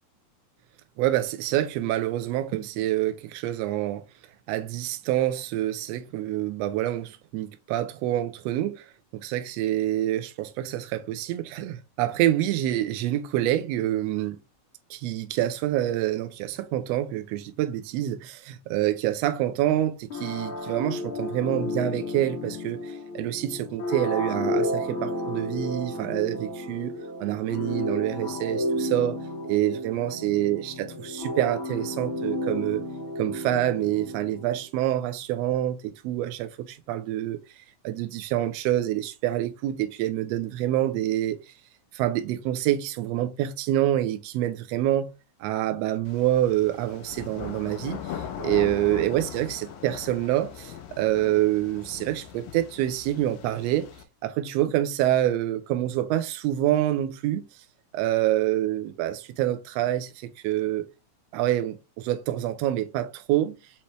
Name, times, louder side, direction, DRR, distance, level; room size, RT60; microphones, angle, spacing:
voice 1, 1.0-4.0 4.5-8.8 9.2-14.4 14.9-26.9 27.2-29.2 29.5-32.8 33.2-37.4 37.8-41.5 41.9-45.1 45.4-48.0 48.4-53.9 54.2-57.4 57.9-60.9 61.3-63.6, right 13 dB, 85° right, 1.5 m, -26 dB
sound 1, 20.1-34.7, left 1 dB, 60° left, 1.4 m, -32 dB
sound 2, 46.0-54.0, left 8 dB, 75° left, 1.9 m, -39 dB
5.5 x 2.8 x 3.1 m
omnidirectional pair, 3.5 m